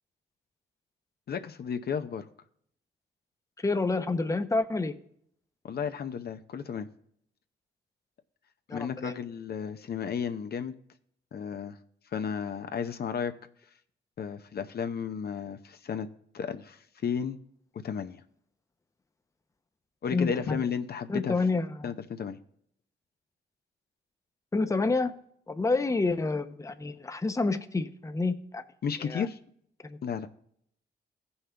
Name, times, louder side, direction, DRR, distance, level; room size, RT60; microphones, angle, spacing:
voice 1, 1.3-2.3 5.6-6.9 8.7-10.7 11.3-11.8 12.1-13.3 14.2-16.1 16.3-17.4 17.8-18.2 20.0-21.3 21.8-22.4 28.8-29.4 30.0-30.3, left 7 dB, 55° left, 8 dB, 0.7 m, -33 dB
voice 2, 3.6-4.9 8.7-9.1 20.1-20.6 21.1-21.9 24.5-25.1 25.5-28.6 29.0-29.3 29.8-30.0, left 3 dB, 15° left, 9 dB, 0.7 m, -28 dB
16.0 x 5.6 x 3.4 m, 0.68 s
cardioid pair, 70°, 19 cm